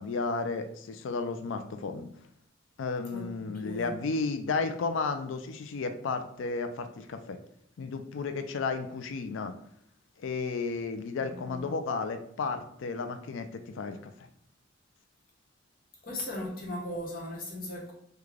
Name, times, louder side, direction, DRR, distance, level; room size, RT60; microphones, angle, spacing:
voice 1, 0.0-2.1 2.8-7.4 7.8-9.5 10.2-14.1, left 4 dB, 75° left, 8 dB, 0.4 m, -33 dB
voice 2, 3.1-3.9 11.2-11.6 16.0-17.9, left 1 dB, 50° left, -3 dB, 1.0 m, -38 dB
3.6 x 2.2 x 3.2 m, 0.70 s
head